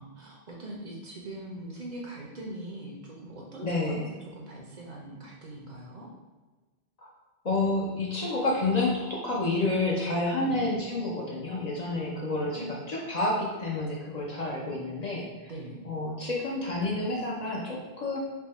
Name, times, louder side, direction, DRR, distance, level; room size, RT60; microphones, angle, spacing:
voice 1, 0.0-4.1 4.3-6.1 10.4-10.6 11.9-12.7 15.5-15.9, right 1 dB, 50° right, -2 dB, 0.7 m, -41 dB
voice 2, 3.6-4.1 7.4-15.3 15.8-18.2, left 2 dB, 50° left, -4 dB, 0.6 m, -29 dB
3.4 x 2.2 x 4.1 m, 1.3 s
omnidirectional pair, 1.0 m